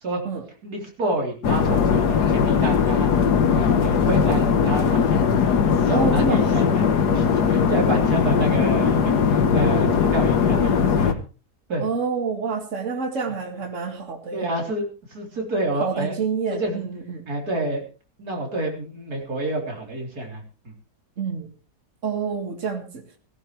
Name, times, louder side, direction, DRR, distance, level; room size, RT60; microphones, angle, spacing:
voice 1, 0.6-3.1 3.5-5.6 5.9-11.2 11.7-11.8 14.3-14.9 15.1-16.2 16.5-16.9 17.3-17.8 18.2-20.7, right 1 dB, 70° right, 0 dB, 4.1 m, -28 dB
sound 1, 1.4-11.1, left 6 dB, 85° left, 1.7 m, -19 dB
voice 2, 5.9-6.7 11.8-14.5 15.8-17.2 21.2-21.5 22.0-23.0, right 5 dB, 50° right, 5 dB, 2.2 m, -27 dB
17.0 x 16.0 x 3.2 m, 0.34 s
omnidirectional pair, 1.7 m